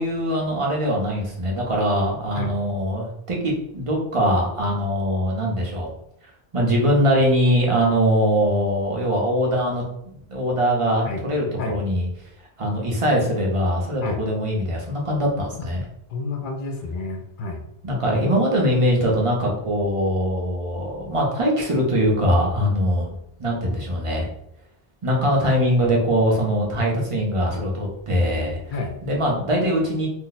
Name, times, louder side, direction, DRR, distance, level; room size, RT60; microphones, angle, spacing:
voice 1, 0.0-5.9 6.5-9.8 10.3-12.1 12.6-15.8 17.8-23.1 23.4-24.3 25.0-28.6 29.0-30.1, equal, 35° right, -2 dB, 0.7 m, -22 dB
voice 2, 16.1-17.6 28.7-28.9, left 3 dB, 60° left, 3 dB, 0.6 m, -29 dB
2.7 x 2.1 x 3.9 m, 0.74 s
omnidirectional pair, 1.0 m